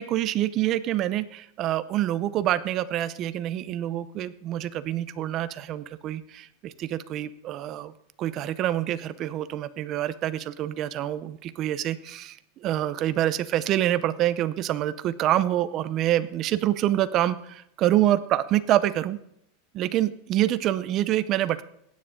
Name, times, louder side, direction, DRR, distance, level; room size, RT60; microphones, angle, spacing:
voice 1, 0.0-7.9 8.2-12.4 12.6-19.2 19.7-21.6, right 13 dB, 35° right, 15 dB, 0.7 m, -26 dB
16.0 x 9.8 x 3.7 m, 0.76 s
supercardioid pair, 155°, 0 cm